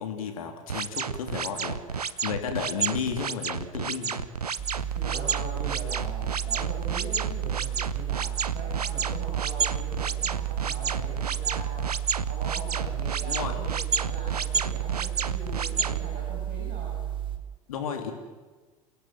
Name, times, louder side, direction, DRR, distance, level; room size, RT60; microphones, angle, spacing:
voice 1, 0.0-4.3 13.2-13.6 17.7-18.1, left 7 dB, 65° left, 4 dB, 3.2 m, -33 dB
sound 1, 0.7-16.0, right 6 dB, 80° right, 0.9 m, -30 dB
sound 2, 4.6-17.4, right 11 dB, 25° right, 2.6 m, -32 dB
voice 2, 4.7-11.9 12.2-17.0, right 3 dB, 40° right, -3 dB, 6.7 m, -41 dB
29.5 x 17.5 x 7.7 m, 1.3 s
figure-of-eight pair, 85°, 19 cm